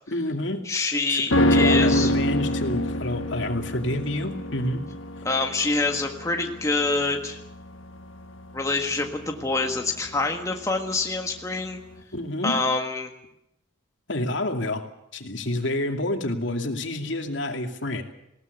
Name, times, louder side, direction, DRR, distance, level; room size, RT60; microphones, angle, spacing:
voice 1, 0.1-0.7 1.1-1.2 1.5-4.8 12.1-12.6 14.1-14.8 15.1-18.0, left 1 dB, 70° left, 4 dB, 2.5 m, -28 dB
voice 2, 0.6-2.1 5.2-7.4 8.5-11.8 12.4-13.1, left 3 dB, 15° left, 3 dB, 1.6 m, -26 dB
sound 1, 1.3-10.7 11.0-11.1, left 1 dB, 90° left, 1.4 m, -26 dB
20.0 x 18.0 x 8.2 m, 0.80 s
head